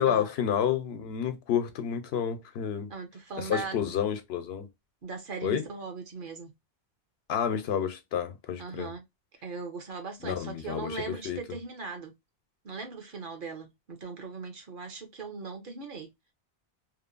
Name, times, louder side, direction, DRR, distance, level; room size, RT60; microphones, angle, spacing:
voice 1, 0.0-2.9 3.4-4.7 5.4-5.6 7.3-8.9 10.2-11.4, left 8 dB, 80° left, 0.8 m, -30 dB
voice 2, 2.9-4.0 5.0-6.5 8.6-9.0 9.4-12.1 12.6-16.1, right 4 dB, 60° right, 0.9 m, -39 dB
2.9 x 2.1 x 2.4 m
omnidirectional pair, 1.0 m